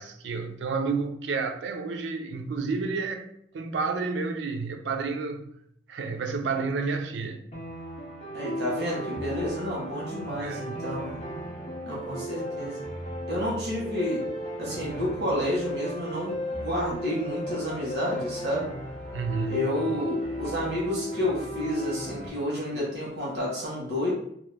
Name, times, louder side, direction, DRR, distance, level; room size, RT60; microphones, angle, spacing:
voice 1, 0.0-5.4 5.9-7.4 10.4-10.9 19.1-19.8, right 4 dB, 90° right, 0.4 m, -30 dB
sound 1, 7.5-22.3, equal, 40° left, 0.7 m, -35 dB
voice 2, 8.3-11.2 11.9-12.8 13.3-14.3 14.6-18.7 19.5-24.1, left 1 dB, 70° right, 1.3 m, -30 dB
2.8 x 2.1 x 3.3 m
head